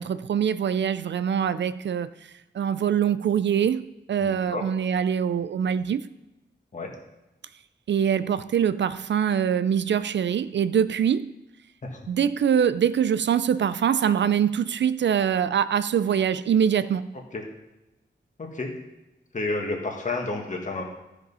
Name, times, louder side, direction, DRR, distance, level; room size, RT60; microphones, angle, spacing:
voice 1, 0.0-2.1 2.5-6.0 7.9-11.3 12.1-17.1, right 8 dB, 70° right, 0.4 m, -24 dB
voice 2, 4.2-4.6 6.7-6.9 11.8-12.1 17.3-17.4 18.4-18.7 19.3-20.8, left 2 dB, 40° left, 1.7 m, -30 dB
13.0 x 5.2 x 5.5 m
wide cardioid pair, 150°, 19 cm